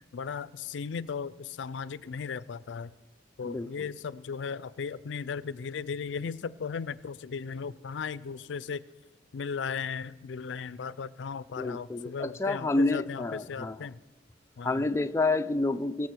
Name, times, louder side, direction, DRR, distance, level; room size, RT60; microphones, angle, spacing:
voice 1, 0.1-2.9 3.4-8.8 9.3-14.0 14.6-14.9, left 6 dB, 80° left, 19 dB, 0.4 m, -36 dB
voice 2, 3.4-3.9 11.6-13.8 14.6-16.1, left 2 dB, 15° left, 9 dB, 0.4 m, -29 dB
21.5 x 7.4 x 6.2 m, 1.3 s
head